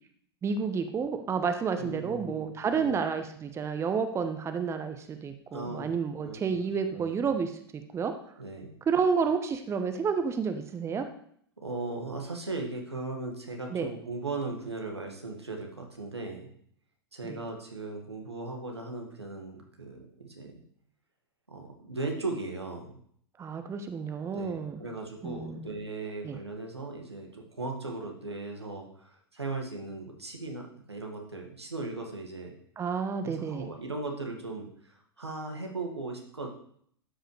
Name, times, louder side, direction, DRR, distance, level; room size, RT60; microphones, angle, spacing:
voice 1, 0.4-8.1 8.9-11.1 13.7-13.9 17.3-17.4 23.4-24.8 25.2-25.7 26.2-26.4 32.8-33.7, right 5 dB, 20° right, 8 dB, 0.9 m, -30 dB
voice 2, 1.8-3.0 5.5-5.9 6.2-6.7 6.9-7.2 8.4-8.7 11.6-16.5 17.1-20.5 21.5-22.9 24.3-32.5 33.2-36.5, right 3 dB, 85° right, 1 dB, 2.0 m, -38 dB
12.5 x 8.0 x 3.3 m, 0.64 s
figure-of-eight pair, 95°, 14 cm